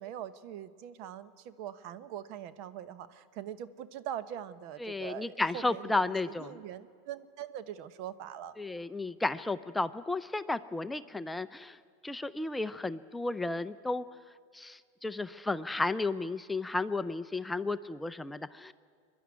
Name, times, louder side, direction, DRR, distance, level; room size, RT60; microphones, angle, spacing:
voice 1, 0.0-8.5, right 10 dB, 55° right, 13 dB, 1.0 m, -42 dB
voice 2, 4.8-6.6 8.6-11.8 12.0-14.0 14.5-18.7, left 2 dB, 10° left, 13 dB, 0.5 m, -33 dB
24.0 x 11.5 x 9.6 m, 2.1 s
hypercardioid pair, 100°, 0 cm